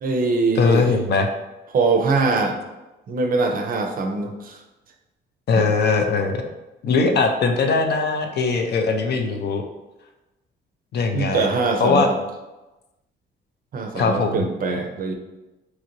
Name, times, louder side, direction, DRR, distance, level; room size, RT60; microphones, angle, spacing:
voice 1, 0.0-0.9 1.7-2.6 3.1-4.6 5.6-5.7 7.1-7.2 11.1-12.2 13.7-15.1, right 3 dB, 45° right, 4 dB, 0.5 m, -22 dB
voice 2, 0.6-1.3 5.5-6.4 6.8-9.6 10.9-11.5 11.8-12.1 13.9-14.5, left 4 dB, 55° left, 4 dB, 0.5 m, -20 dB
2.9 x 2.5 x 2.9 m, 1.0 s
cardioid pair, 90°, 20 cm